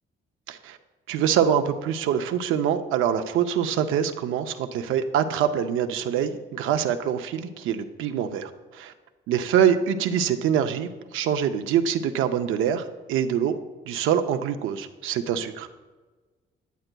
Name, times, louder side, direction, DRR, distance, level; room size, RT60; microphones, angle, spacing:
voice 1, 1.1-8.9 9.3-13.6 13.9-15.7, right 9 dB, 85° right, 8 dB, 0.5 m, -25 dB
9.2 x 8.8 x 2.2 m, 1.3 s
cardioid pair, 90°, 20 cm